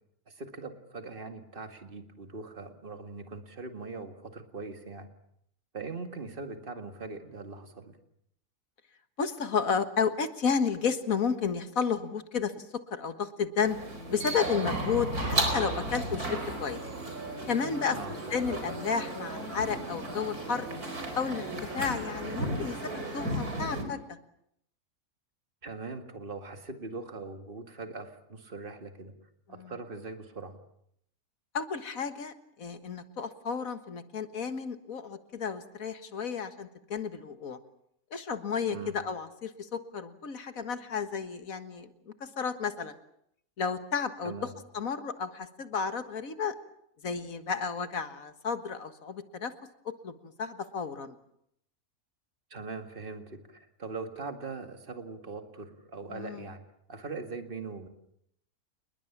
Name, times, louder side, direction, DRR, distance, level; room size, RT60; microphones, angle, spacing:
voice 1, 0.3-5.1 5.7-8.0 17.9-18.1 25.6-29.2 29.5-30.6 38.7-38.9 44.2-44.5 52.5-56.6 56.9-57.9, right 3 dB, 35° right, 7 dB, 2.3 m, -41 dB
voice 2, 9.2-13.8 14.1-16.8 17.4-18.0 18.3-20.7 21.2-24.2 29.5-29.7 31.5-37.6 38.1-41.9 42.2-42.9 43.6-44.3 44.7-46.5 47.0-49.5 50.0-51.2 56.1-56.5, left 6 dB, 70° left, 10 dB, 2.0 m, -32 dB
sound 1, 13.6-23.8, right 1 dB, 85° right, 4.8 m, -34 dB
28.5 x 21.0 x 7.3 m, 0.72 s
omnidirectional pair, 1.5 m